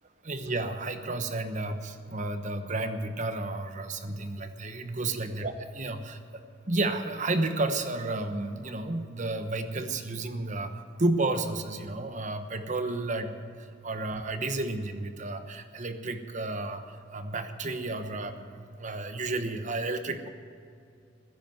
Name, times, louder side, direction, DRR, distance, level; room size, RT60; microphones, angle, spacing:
voice 1, 0.2-6.4 6.7-10.7 11.0-13.4 13.8-20.3, right 2 dB, 40° right, 8 dB, 1.1 m, -32 dB
15.0 x 10.0 x 9.0 m, 2.4 s
head